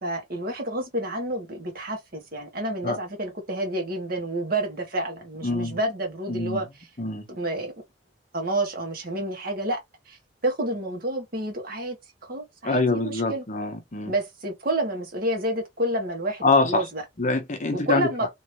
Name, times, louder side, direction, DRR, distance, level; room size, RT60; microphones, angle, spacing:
voice 1, 0.0-6.7 7.3-7.7 8.3-9.8 10.1-10.2 10.4-12.0 12.2-13.4 14.1-17.0 17.9-18.3, right 1 dB, 55° right, 1.6 m, -29 dB
voice 2, 5.4-5.8 6.3-6.6 7.0-7.2 12.6-14.1 16.4-16.8 17.2-18.1, left 3 dB, 45° left, 0.9 m, -24 dB
3.4 x 3.1 x 2.9 m
head